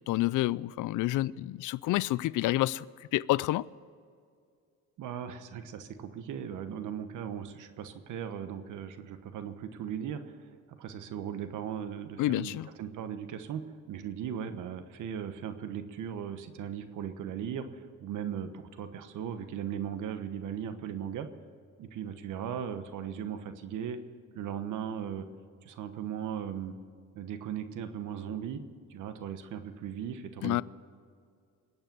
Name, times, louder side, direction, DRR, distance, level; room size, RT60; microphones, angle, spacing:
voice 1, 0.1-2.9 3.1-3.7 12.2-12.7 30.4-30.6, left 17 dB, 80° left, 0.5 m, -28 dB
voice 2, 5.0-21.3 21.8-24.0 24.3-25.3 25.6-26.7 27.1-28.6 28.9-30.6, right 8 dB, 80° right, 1.2 m, -38 dB
21.0 x 8.8 x 7.6 m
cardioid pair, 90°, 30 cm